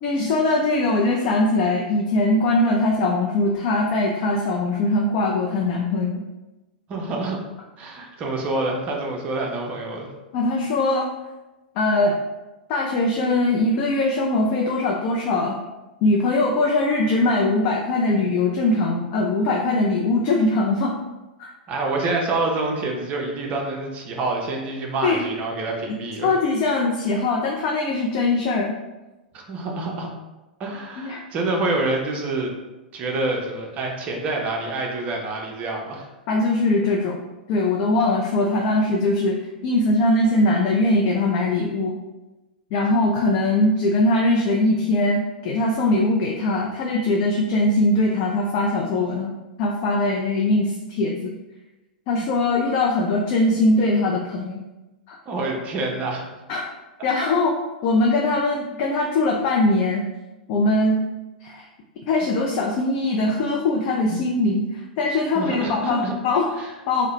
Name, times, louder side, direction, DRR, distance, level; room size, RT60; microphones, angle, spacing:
voice 1, 0.0-6.2 10.3-11.1 11.8-12.1 12.7-15.6 16.0-20.9 21.4-21.5 25.0-25.2 26.2-28.7 31.0-31.2 36.3-37.2 37.5-41.9 42.7-49.3 49.6-51.3 52.1-54.6 55.1-55.2 56.5-56.7 57.0-57.5 57.8-60.0 60.5-61.0 61.4-61.6 62.1-66.5 66.9-67.1, left 2 dB, 40° left, -1 dB, 0.4 m, -21 dB
voice 2, 6.9-7.4 7.8-10.1 21.7-26.3 29.3-30.1 30.6-32.5 32.9-36.1 55.3-56.2 65.3-66.1 66.6-66.7, right 2 dB, 30° right, 0 dB, 0.6 m, -27 dB
3.8 x 2.1 x 3.0 m, 1.1 s
figure-of-eight pair, 100°, 5 cm